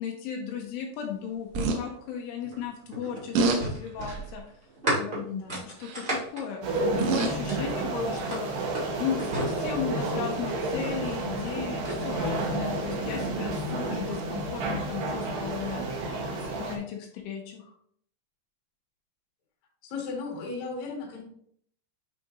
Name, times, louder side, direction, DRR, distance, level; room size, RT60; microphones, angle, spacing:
voice 1, 0.0-4.4 4.9-5.3 5.8-6.7 6.9-8.5 9.0-17.7, left 7 dB, 80° left, 1 dB, 3.1 m, -36 dB
sound 1, 1.5-1.8 3.4-3.6 4.1-4.4 5.8-6.1 6.8-7.4 8.4-8.5, right 3 dB, 90° right, 3.6 m, -26 dB
sound 2, 2.4-7.7 8.1-10.2 11.2-12.0, right 1 dB, 40° right, 0.8 m, -34 dB
voice 2, 5.2-5.6 19.8-21.2, left 4 dB, 55° left, -1 dB, 2.1 m, -35 dB
sound 3, 6.6-16.8, right 2 dB, 70° right, 2.2 m, -31 dB
10.5 x 4.9 x 2.6 m, 0.65 s
omnidirectional pair, 5.8 m